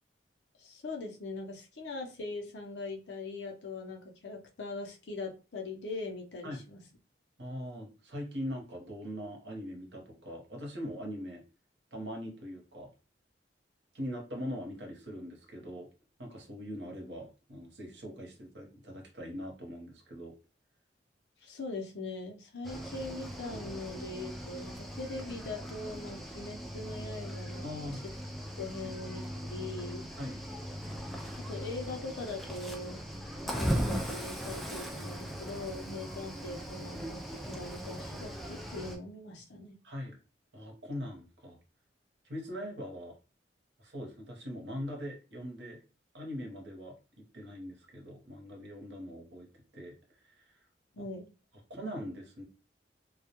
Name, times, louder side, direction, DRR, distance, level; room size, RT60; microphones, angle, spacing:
voice 1, 0.6-6.8 21.4-28.0 28.6-30.1 31.5-33.0 33.4-39.8 50.9-51.3, left 3 dB, 75° left, 1 dB, 0.6 m, -41 dB
voice 2, 7.4-11.4 11.9-12.9 13.9-15.9 16.2-20.3 27.6-28.0 28.8-28.9 30.2-30.4 39.8-40.1 40.5-41.6 42.2-43.1 43.8-45.8 46.1-50.5 51.0-51.1 51.7-52.4, equal, 85° right, 1 dB, 0.9 m, -41 dB
Cricket / Waves surf, 22.6-39.0, equal, ahead, 0.3 m, -39 dB
2.2 x 2.2 x 2.8 m, 0.34 s
head